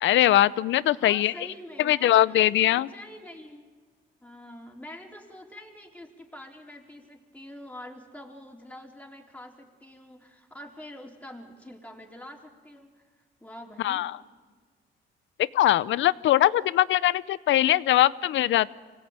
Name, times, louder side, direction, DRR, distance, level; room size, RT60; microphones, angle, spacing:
voice 1, 0.0-1.3 1.8-2.9 13.8-14.1 15.5-18.7, left 13 dB, 75° left, 19 dB, 0.6 m, -21 dB
voice 2, 0.9-3.7 4.2-12.9 13.4-14.0, left 1 dB, 5° left, 1 dB, 3.7 m, -45 dB
25.0 x 17.5 x 8.9 m, 1.4 s
cardioid pair, 90°, 20 cm